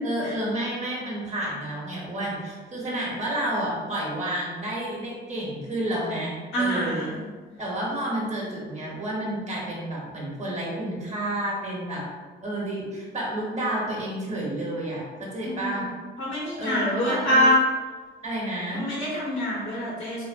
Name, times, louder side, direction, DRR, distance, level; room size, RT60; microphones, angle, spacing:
voice 1, 0.0-7.1 7.6-12.0 12.4-15.9 16.6-17.5 18.2-18.9, right 1 dB, 35° right, -4 dB, 1.1 m, -30 dB
voice 2, 6.5-7.2 15.4-15.6 16.2-17.5 18.8-20.3, equal, 75° left, -5 dB, 1.3 m, -25 dB
3.7 x 2.1 x 2.5 m, 1.4 s
cardioid pair, 90°, 20 cm